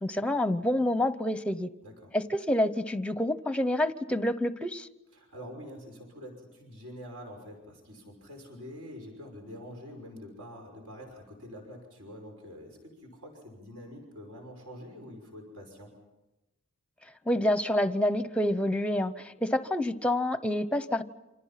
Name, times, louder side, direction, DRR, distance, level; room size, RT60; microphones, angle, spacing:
voice 1, 0.0-1.7 2.1-4.9 17.3-21.0, left 1 dB, 5° left, 12 dB, 0.8 m, -28 dB
voice 2, 5.1-15.9, equal, 75° right, 2 dB, 5.8 m, -46 dB
29.0 x 26.0 x 5.8 m, 1.0 s
head